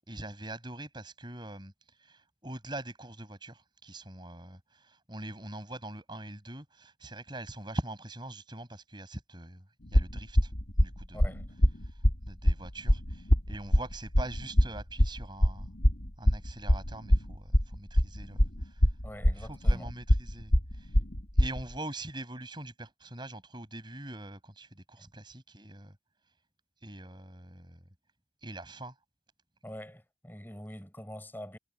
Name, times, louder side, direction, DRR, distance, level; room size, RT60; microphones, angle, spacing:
voice 1, 0.1-1.7 2.0-9.6 9.9-10.5 10.8-11.2 12.3-15.7 16.2-18.8 19.3-21.0 21.3-26.0 26.8-27.8 28.4-28.9, right 1 dB, 25° right, 6.3 m, -43 dB
sound 1, 9.9-21.6, equal, 60° left, 3.0 m, -24 dB
voice 2, 11.1-11.5 19.0-19.9 25.0-25.1 29.6-31.6, equal, 10° left, 7.4 m, -45 dB
head